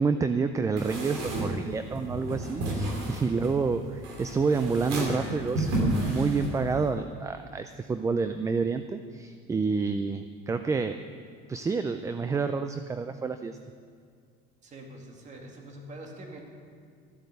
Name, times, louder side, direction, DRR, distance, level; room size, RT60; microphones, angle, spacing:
voice 1, 0.0-11.0 11.5-13.6, right 4 dB, 15° right, 9 dB, 0.4 m, -29 dB
sound 1, 0.8-6.9, right 1 dB, 85° right, 3.3 m, -32 dB
voice 2, 14.6-16.4, right 1 dB, 35° right, 1 dB, 2.3 m, -44 dB
14.0 x 9.1 x 6.8 m, 2.2 s
cardioid pair, 120°, 20 cm